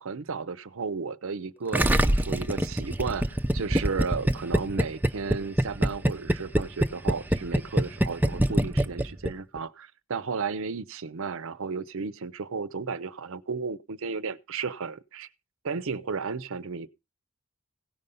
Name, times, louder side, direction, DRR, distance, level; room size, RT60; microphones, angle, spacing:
voice 1, 0.0-15.3 15.6-16.9, right 5 dB, 65° right, 0.6 m, -34 dB
Gurgling, 1.7-9.6, right 1 dB, 10° right, 0.5 m, -24 dB
16.5 x 5.6 x 5.3 m
head